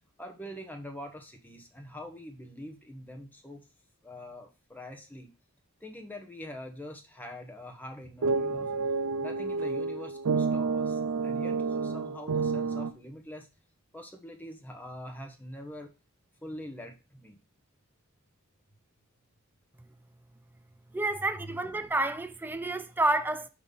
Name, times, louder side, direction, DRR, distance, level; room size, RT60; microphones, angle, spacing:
voice 1, 0.2-3.6 4.0-5.3 5.8-8.7 9.2-13.5 13.9-15.9 16.4-17.4 21.3-21.6, left 1 dB, 10° left, 1.0 m, -44 dB
sound 1, 8.2-12.9, right 4 dB, 80° right, 0.5 m, -29 dB
voice 2, 20.9-23.5, right 2 dB, 10° right, 0.4 m, -29 dB
4.9 x 3.9 x 5.4 m
head